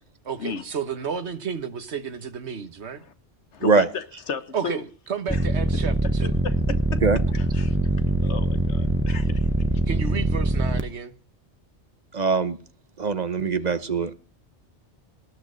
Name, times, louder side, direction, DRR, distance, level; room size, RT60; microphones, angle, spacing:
voice 1, 0.2-3.0 4.5-6.3 9.9-11.1, right 6 dB, 75° right, 1.5 m, -32 dB
voice 2, 3.5-4.8 5.3-5.4 6.4-7.0 7.3-7.8 8.2-9.5, left 5 dB, 80° left, 1.5 m, -34 dB
sound 1, 5.3-10.8, right 2 dB, 10° right, 0.9 m, -23 dB
voice 3, 12.1-12.6 13.0-14.1, right 4 dB, 40° right, 1.1 m, -22 dB
18.5 x 6.6 x 6.3 m
omnidirectional pair, 1.2 m